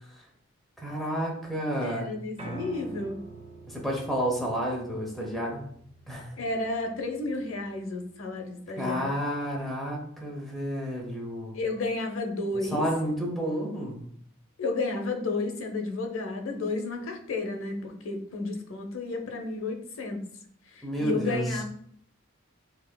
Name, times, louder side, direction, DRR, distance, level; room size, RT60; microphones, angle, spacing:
voice 1, 0.8-2.1 3.7-5.6 6.1-6.4 8.8-11.6 12.5-14.0 20.8-21.6, equal, ahead, -2 dB, 0.8 m, -30 dB
voice 2, 1.8-3.2 6.4-9.1 11.5-12.8 14.6-20.2 20.8-21.6, left 3 dB, 70° left, 4 dB, 0.7 m, -32 dB
Piano, 2.4-8.6, right 3 dB, 25° right, 0.4 m, -46 dB
5.4 x 2.8 x 2.2 m, 0.64 s
head